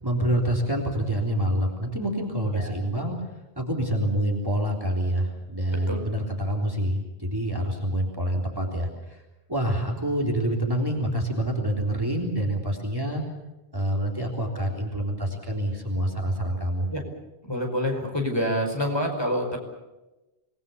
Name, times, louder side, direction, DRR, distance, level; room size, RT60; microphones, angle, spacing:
voice 1, 0.0-3.2 3.6-9.2 9.5-13.2 13.7-16.9, right 1 dB, 20° right, 1 dB, 3.6 m, -27 dB
voice 2, 17.5-19.6, equal, 25° left, 2 dB, 4.9 m, -27 dB
27.0 x 20.5 x 7.1 m, 1.0 s
omnidirectional pair, 1.1 m